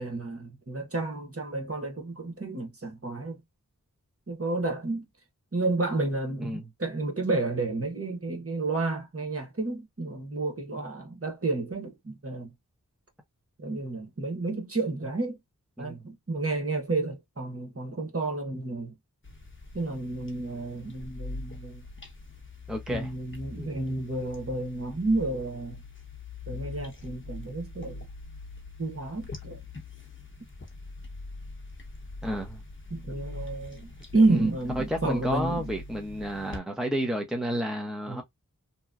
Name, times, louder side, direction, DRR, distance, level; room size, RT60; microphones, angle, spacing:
voice 1, 0.0-3.4 4.3-5.0 5.5-12.5 13.6-15.4 15.8-18.9 19.7-21.8 22.9-25.8 26.5-28.1 28.8-29.6 32.9-35.7 38.1-38.2, right 2 dB, 45° right, 1.1 m, -30 dB
sound 1, 19.2-36.6, left 3 dB, 35° left, 1.0 m, -43 dB
voice 2, 22.7-23.1 23.6-23.9 32.2-32.6 34.3-34.5 34.8-38.2, equal, ahead, 0.8 m, -31 dB
2.9 x 2.3 x 2.4 m
wide cardioid pair, 50°, 32 cm